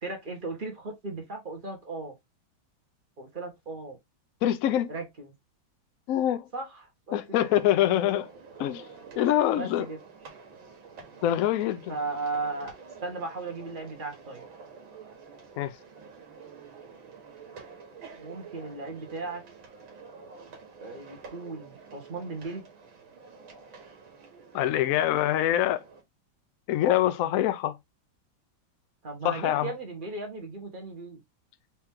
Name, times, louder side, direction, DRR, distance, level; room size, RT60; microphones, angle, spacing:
voice 1, 0.0-2.1 3.2-4.0 4.9-5.3 6.5-7.5 9.6-10.0 11.9-12.7 13.0-14.4 18.1-19.4 20.8-22.6 29.0-31.2, right 3 dB, 30° right, 1.3 m, -36 dB
voice 2, 4.4-4.9 6.1-6.5 7.1-8.3 8.6-8.8 9.2-9.9 11.2-11.9 15.6-15.8 24.5-25.8 26.7-27.8 29.2-29.7, left 12 dB, 90° left, 0.7 m, -25 dB
sound 1, 7.4-26.0, right 5 dB, 80° right, 2.1 m, -49 dB
4.4 x 3.0 x 3.6 m
omnidirectional pair, 2.1 m